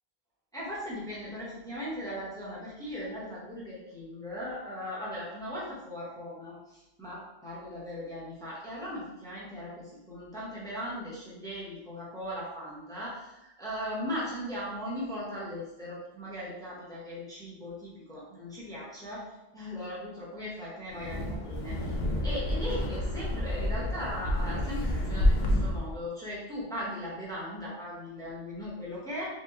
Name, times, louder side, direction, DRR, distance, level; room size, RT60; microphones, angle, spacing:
voice 1, 0.5-19.3 19.5-22.0 22.2-29.3, equal, 5° left, -8 dB, 1.0 m, -38 dB
Wind, 20.9-26.0, left 1 dB, 55° left, 0.7 m, -29 dB
4.1 x 2.7 x 2.9 m, 0.95 s
omnidirectional pair, 1.0 m